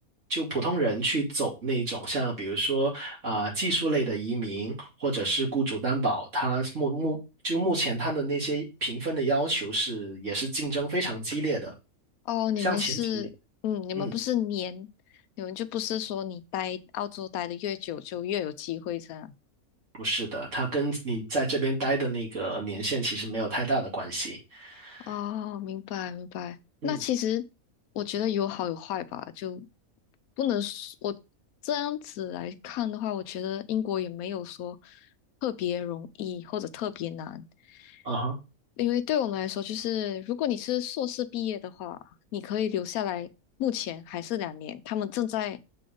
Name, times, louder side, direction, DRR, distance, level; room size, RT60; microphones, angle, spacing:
voice 1, 0.3-7.2 7.4-11.7 12.6-13.2 14.0-14.1 20.0-25.1 26.8-27.0 38.0-38.4, right 2 dB, 55° right, 2.8 m, -29 dB
voice 2, 12.3-13.3 13.6-14.9 15.4-19.3 25.1-26.6 26.8-27.4 27.9-29.7 30.4-31.1 31.6-35.1 35.4-38.0 38.8-42.0 42.3-43.3 43.6-45.6, left 10 dB, 80° left, 1.0 m, -31 dB
6.7 x 3.9 x 5.1 m
omnidirectional pair, 1.5 m